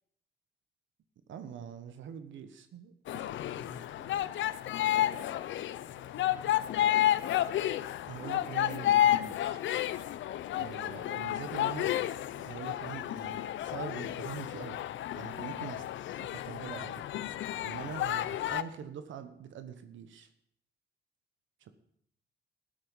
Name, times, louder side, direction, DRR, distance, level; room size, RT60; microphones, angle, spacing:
voice 1, 1.3-3.4 8.1-9.6 10.6-11.9 12.4-14.8 15.1-15.8 16.2-20.3 21.6-21.7, right 8 dB, 75° right, 10 dB, 1.3 m, -44 dB
sound 1, 3.1-18.6, left 12 dB, 70° left, 0.7 m, -31 dB
voice 2, 3.5-7.4 8.1-8.7 15.3-15.6, left 1 dB, 10° left, 1 dB, 3.3 m, -56 dB
14.0 x 12.0 x 5.6 m, 0.70 s
cardioid pair, 90°, 20 cm